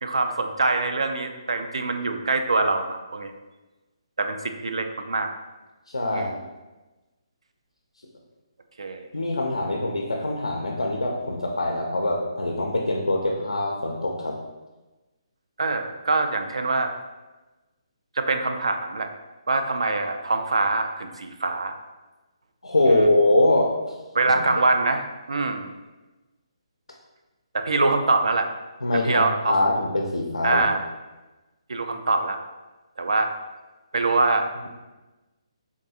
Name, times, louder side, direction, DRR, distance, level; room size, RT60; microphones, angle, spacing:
voice 1, 0.0-3.3 4.2-5.3 6.1-6.3 8.8-9.1 15.6-16.9 18.2-19.1 19.5-21.8 24.1-25.7 27.5-28.5 29.0-29.6 30.4-30.8 31.7-32.4 33.0-33.3 33.9-34.7, right 3 dB, 75° right, 6 dB, 0.3 m, -24 dB
voice 2, 5.9-6.3 9.1-14.3 22.6-24.0 28.8-30.7, left 1 dB, 90° left, -1 dB, 0.4 m, -23 dB
3.5 x 2.3 x 2.7 m, 1.1 s
figure-of-eight pair, 145°, 3 cm